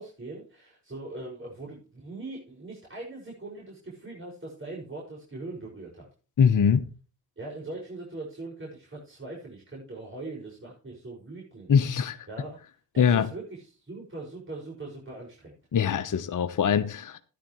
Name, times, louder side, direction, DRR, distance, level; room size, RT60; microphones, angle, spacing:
voice 1, 0.0-6.1 7.4-12.6 12.9-15.6, right 2 dB, 25° right, 6.0 m, -41 dB
voice 2, 6.4-6.8 11.7-12.2 13.0-13.3 15.7-17.2, left 7 dB, 40° left, 1.1 m, -22 dB
13.5 x 10.5 x 3.2 m
hypercardioid pair, 45°, 47 cm